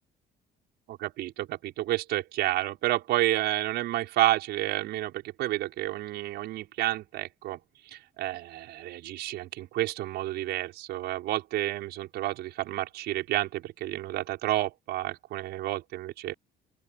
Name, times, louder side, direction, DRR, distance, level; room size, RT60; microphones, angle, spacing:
voice 1, 0.9-7.6 7.9-16.3, right 15 dB, 80° right, 6.1 m, -30 dB
open air
cardioid pair, 110°, 17 cm